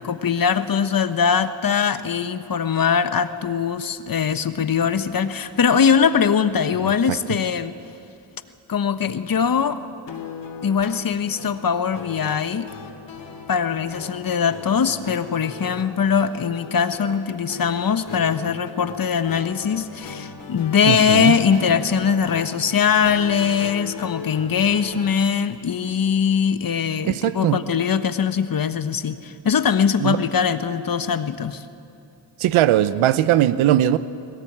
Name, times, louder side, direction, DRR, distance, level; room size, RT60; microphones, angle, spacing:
voice 1, 0.0-7.7 8.7-9.8 10.6-12.7 13.5-31.6, left 7 dB, 45° left, 11 dB, 1.2 m, -21 dB
voice 2, 6.8-7.2 20.8-21.4 27.1-27.6 30.0-30.2 32.4-34.0, right 12 dB, 90° right, 15 dB, 0.8 m, -19 dB
sound 1, 10.1-25.3, left 6 dB, 60° left, 3.2 m, -38 dB
21.5 x 18.0 x 8.8 m, 2.5 s
cardioid pair, 70°, 47 cm